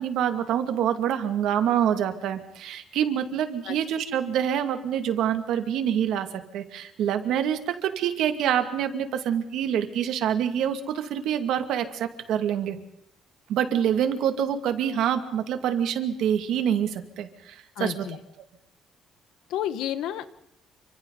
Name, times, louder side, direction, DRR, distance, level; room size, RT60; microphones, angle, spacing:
voice 1, 0.0-12.8 13.5-18.1, right 9 dB, 75° right, 8 dB, 2.2 m, -26 dB
voice 2, 17.8-18.2 19.5-20.3, left 11 dB, 85° left, 12 dB, 1.5 m, -30 dB
29.5 x 25.5 x 4.0 m, 0.74 s
cardioid pair, 165°, 0 cm